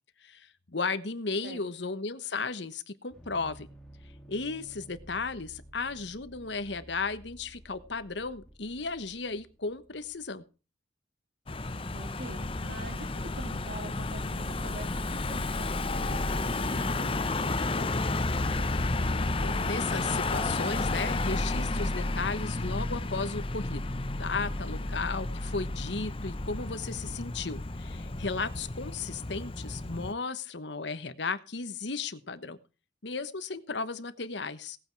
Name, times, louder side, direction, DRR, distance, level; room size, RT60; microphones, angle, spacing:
voice 1, 0.2-3.7 4.3-10.4 19.4-23.8 24.2-32.6 33.0-34.8, left 4 dB, 75° left, 12 dB, 1.2 m, -35 dB
sound 1, 3.1-10.3, right 1 dB, 5° left, 2.5 m, -53 dB
Car passing by / Engine, 11.5-30.1, left 2 dB, 30° left, 0.8 m, -32 dB
voice 2, 11.9-18.1, right 1 dB, 60° right, 5 dB, 3.2 m, -45 dB
18.0 x 8.8 x 4.7 m, 0.34 s
head